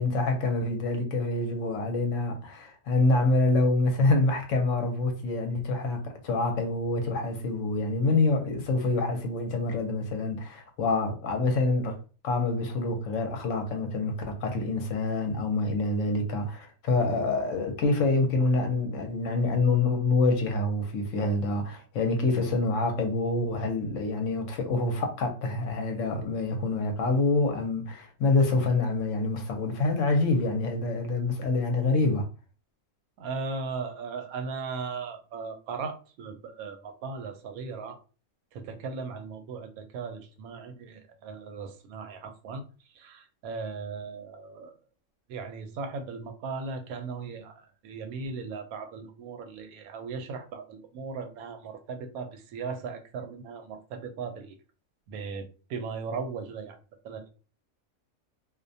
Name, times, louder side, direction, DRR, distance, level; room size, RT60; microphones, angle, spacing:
voice 1, 0.0-12.0 12.2-32.3, left 3 dB, 70° left, 0.9 m, -26 dB
voice 2, 33.2-38.0 38.5-44.8 45.3-54.6 55.1-56.8 57.0-57.3, right 4 dB, 90° right, 1.0 m, -37 dB
2.4 x 2.1 x 2.5 m
omnidirectional pair, 1.5 m